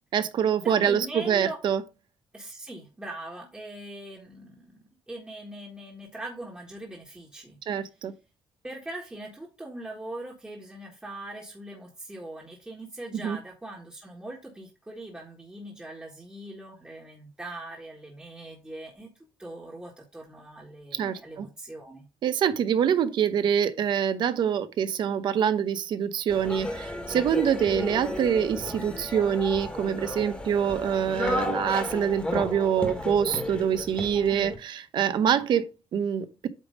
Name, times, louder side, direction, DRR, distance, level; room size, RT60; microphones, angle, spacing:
voice 1, 0.1-1.8 7.7-8.1 13.1-13.4 21.0-21.5 22.2-36.5, right 8 dB, 65° right, 0.9 m, -25 dB
voice 2, 0.6-1.6 2.3-7.6 8.6-19.1 19.4-22.1 34.3-34.5, right 1 dB, 10° right, 1.6 m, -41 dB
sound 1, 26.3-34.6, left 1 dB, 10° left, 1.6 m, -33 dB
8.7 x 3.5 x 5.2 m
cardioid pair, 145°, 9 cm